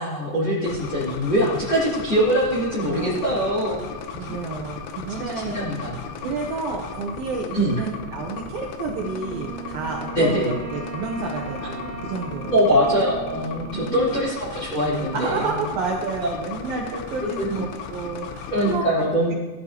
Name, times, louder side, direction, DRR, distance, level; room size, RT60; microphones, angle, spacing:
voice 1, 0.0-3.8 4.2-4.4 5.1-6.0 7.5-7.8 10.1-10.5 12.5-15.6 17.2-17.6 18.5-19.3, equal, 30° left, -8 dB, 3.2 m, -23 dB
sound 1, 0.7-18.8, left 6 dB, 80° left, 3.1 m, -36 dB
voice 2, 2.9-3.3 4.1-5.6 6.2-12.8 13.7-14.2 15.1-18.8, right 4 dB, 75° right, 1 dB, 2.2 m, -30 dB
Wind instrument woodwind instrument, 9.0-14.4, right 6 dB, 40° right, 3.1 m, -37 dB
18.0 x 11.0 x 2.9 m, 1.3 s
omnidirectional pair, 5.2 m